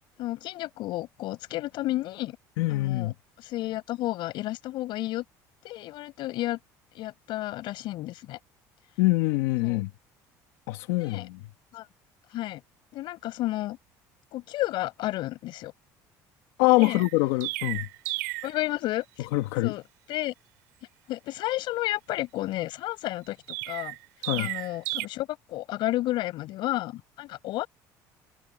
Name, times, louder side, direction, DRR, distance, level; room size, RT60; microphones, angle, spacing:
voice 1, 0.2-2.4 2.7-3.1 3.4-5.2 5.6-6.6 6.9-8.4 9.6-9.8 11.0-11.3 11.7-11.8 12.3-12.6 12.9-13.8 14.3-15.7 16.8-17.0 18.4-19.0 19.6-19.8 20.1-20.3 21.1-23.4 23.7-23.9 24.4-27.7, left 16 dB, 70° left, 5.3 m, -31 dB
voice 2, 2.6-3.1 9.0-9.9 10.7-11.4 16.6-17.9 19.2-19.7 24.2-24.5, left 20 dB, 85° left, 1.5 m, -24 dB
Chirp tweet, 16.8-18.6 23.5-25.1, right 23 dB, 90° right, 3.2 m, -33 dB
supercardioid pair, 85°, 8 cm